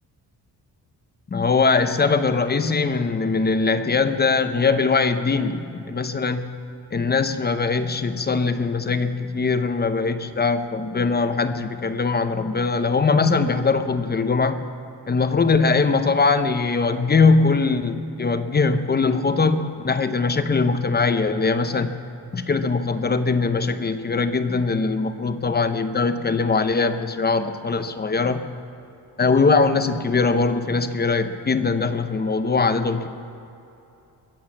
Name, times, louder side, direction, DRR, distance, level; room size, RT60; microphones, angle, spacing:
voice 1, 1.3-6.5 6.9-14.6 15.1-21.9 22.3-28.4 29.2-33.1, left 4 dB, 25° left, 10 dB, 0.7 m, -21 dB
22.0 x 7.9 x 7.6 m, 2.7 s
wide cardioid pair, 160°, 39 cm